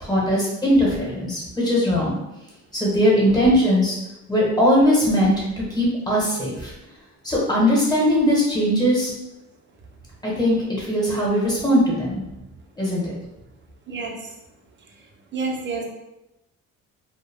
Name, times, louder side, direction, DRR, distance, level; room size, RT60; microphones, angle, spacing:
voice 1, 0.0-2.1 2.7-3.9 4.3-5.3 5.7-6.7 7.2-9.1 10.2-12.2 12.8-13.1, equal, 15° left, -6 dB, 1.2 m, -20 dB
voice 2, 15.3-15.8, right 4 dB, 40° right, 0 dB, 0.6 m, -28 dB
2.3 x 2.0 x 3.5 m, 0.95 s
cardioid pair, 90°, 30 cm